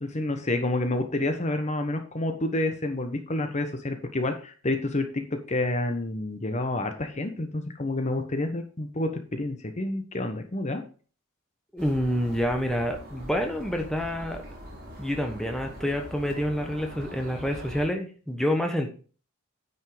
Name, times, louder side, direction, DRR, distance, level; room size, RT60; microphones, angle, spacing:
voice 1, 0.0-10.8, left 2 dB, 35° left, 7 dB, 1.1 m, -29 dB
voice 2, 11.7-14.4 15.0-18.9, equal, ahead, 3 dB, 1.2 m, -28 dB
sound 1, 11.8-17.9, equal, 50° right, 5.3 m, -43 dB
9.5 x 5.5 x 5.0 m, 0.38 s
head